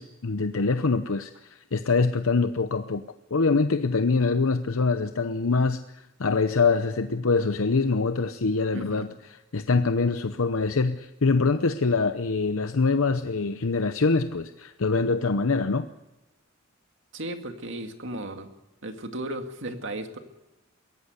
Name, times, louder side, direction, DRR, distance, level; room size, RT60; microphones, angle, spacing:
voice 1, 0.0-3.0 3.3-9.1 9.5-15.9, left 4 dB, 80° left, 9 dB, 0.8 m, -24 dB
voice 2, 8.7-9.2 17.1-18.5 18.8-20.2, right 1 dB, 60° right, 6 dB, 2.2 m, -35 dB
22.5 x 17.0 x 8.2 m, 1.0 s
head